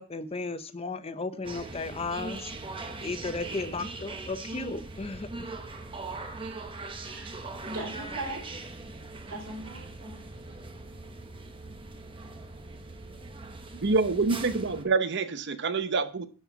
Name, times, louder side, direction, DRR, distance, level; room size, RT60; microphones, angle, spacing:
voice 1, 0.0-2.5 3.0-5.3, left 3 dB, 30° left, 0.7 m, -34 dB
sound 1, 1.4-14.9, right 3 dB, 25° right, 0.9 m, -41 dB
voice 2, 7.0-8.4 9.3-10.2, right 1 dB, 70° right, 3.8 m, -39 dB
voice 3, 13.8-16.3, right 4 dB, 55° right, 0.8 m, -26 dB
11.5 x 4.4 x 5.7 m
head